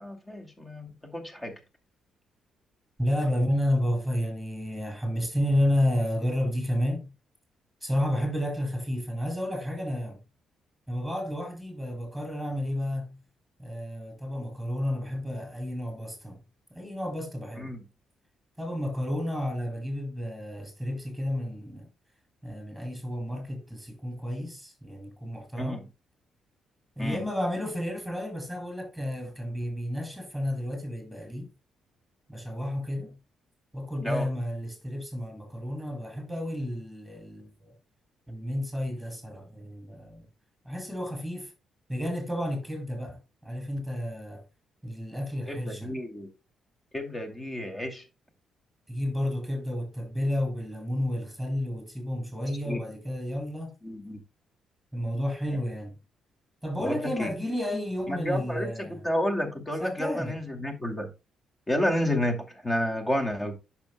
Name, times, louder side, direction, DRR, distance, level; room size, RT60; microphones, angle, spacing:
voice 1, 0.0-1.5 17.5-17.8 25.6-25.8 27.0-27.2 34.0-34.3 45.5-46.3 46.9-48.0 52.7-52.8 53.8-54.2 56.8-57.3 58.1-61.1 61.7-63.6, left 1 dB, 20° left, 2.3 m, -30 dB
voice 2, 3.0-7.1 7.8-10.2 10.9-13.2 13.6-16.4 16.7-17.7 18.6-21.9 22.4-25.8 27.0-31.5 32.3-33.2 33.7-37.7 38.3-40.2 40.6-41.5 41.9-44.4 44.8-45.9 48.9-53.7 54.9-56.0 56.6-59.0 59.8-60.4, left 1 dB, ahead, 4.2 m, -31 dB
10.5 x 6.6 x 2.2 m
cardioid pair, 90°, 0 cm